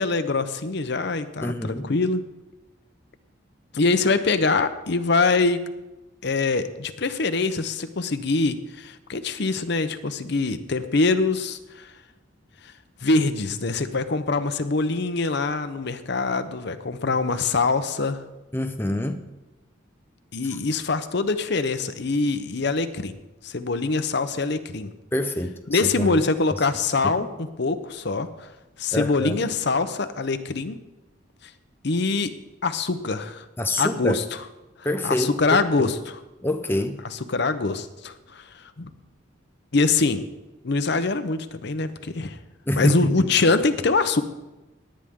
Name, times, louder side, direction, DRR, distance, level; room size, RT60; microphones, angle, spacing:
voice 1, 0.0-2.2 3.7-5.6 6.2-11.9 13.0-18.2 20.3-23.1 23.4-24.9 25.7-28.5 28.8-30.8 31.8-32.3 32.6-33.4 33.8-34.2 35.0-36.2 37.1-38.4 38.8-38.9 39.7-40.2 40.6-42.4 42.7-44.2, left 3 dB, 60° left, 10 dB, 0.8 m, -24 dB
voice 2, 1.4-1.9 18.5-19.3 25.1-26.2 27.0-27.3 28.9-29.5 33.6-34.2 34.8-35.3 35.8-35.9 36.4-37.0 42.7-43.3, left 1 dB, 10° left, 6 dB, 0.6 m, -26 dB
18.0 x 10.0 x 3.7 m, 1.0 s
head